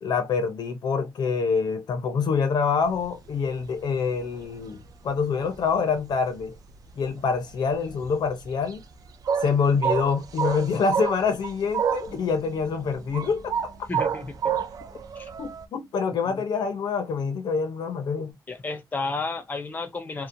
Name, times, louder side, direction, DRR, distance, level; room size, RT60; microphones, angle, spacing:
voice 1, 0.0-6.6 7.0-8.8 9.4-13.9 15.4-18.3, left 5 dB, 80° left, 0.6 m, -26 dB
sound 1, 2.9-3.9 4.2-5.7 6.0-7.5 7.8-12.2 12.6-15.6, right 7 dB, 60° right, 0.3 m, -29 dB
Bass guitar, 12.1-18.3, right 2 dB, 35° right, 0.9 m, -54 dB
voice 2, 13.9-14.6 15.2-15.3 16.3-16.4 18.5-20.3, left 3 dB, 25° left, 0.5 m, -32 dB
2.8 x 2.0 x 2.5 m
wide cardioid pair, 165°, 7 cm